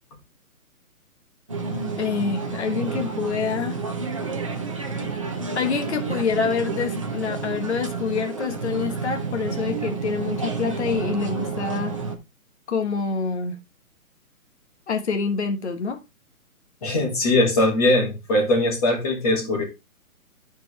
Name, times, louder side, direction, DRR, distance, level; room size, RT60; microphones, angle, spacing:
sound 1, 1.5-12.2, right 4 dB, 20° right, 0.7 m, -30 dB
voice 1, 2.0-3.8 5.5-12.0 12.7-13.6 14.9-16.0, left 5 dB, 50° left, 1.4 m, -26 dB
voice 2, 16.8-19.6, left 1 dB, 25° left, 2.5 m, -21 dB
12.5 x 4.5 x 3.3 m
hypercardioid pair, 175°, 45 cm